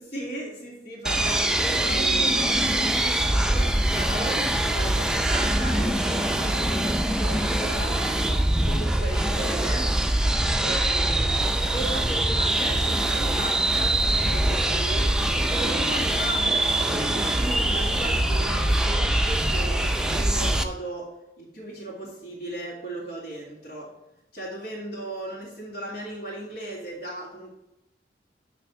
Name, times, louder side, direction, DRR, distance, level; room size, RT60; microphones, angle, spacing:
voice 1, 0.1-9.9 10.6-11.2 11.7-21.1 21.4-23.9 24.3-27.5, right 1 dB, 65° left, -7 dB, 2.3 m, -36 dB
sound 1, 1.0-20.6, right 1 dB, 5° right, 0.4 m, -23 dB
9.8 x 3.4 x 5.9 m, 0.89 s
head